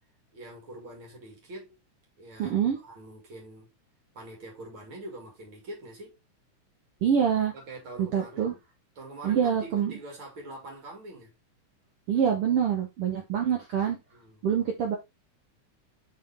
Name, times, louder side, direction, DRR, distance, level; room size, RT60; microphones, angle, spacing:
voice 1, 0.3-1.8 2.2-3.7 4.1-6.2 7.5-8.6 9.0-11.3 14.1-14.4, right 1 dB, 40° right, 2.9 m, -44 dB
voice 2, 2.4-2.8 7.0-7.5 8.0-8.5 9.2-9.9 12.1-14.0 14.4-15.0, right 8 dB, 65° right, 1.5 m, -25 dB
5.4 x 5.4 x 3.4 m
omnidirectional pair, 3.6 m